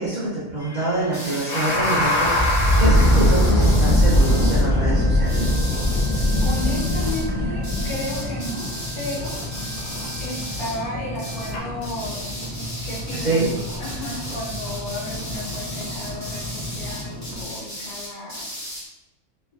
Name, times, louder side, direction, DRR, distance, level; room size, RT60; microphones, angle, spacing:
voice 1, 0.0-5.5 13.1-13.5, right 2 dB, 60° right, -7 dB, 0.4 m, -25 dB
sound 1, 0.6-11.6, left 1 dB, 55° left, 0.7 m, -21 dB
sound 2, 1.1-4.6 5.2-7.2 7.6-10.8 11.1-11.5 11.8-18.8, equal, 25° left, 0.4 m, -35 dB
sound 3, 1.6-17.4, left 1 dB, 75° right, 1.1 m, -34 dB
voice 2, 6.4-8.7 8.9-9.3 10.2-13.4 13.8-18.5, left 1 dB, 85° left, -6 dB, 1.5 m, -33 dB
3.2 x 2.2 x 2.2 m, 0.93 s
omnidirectional pair, 1.5 m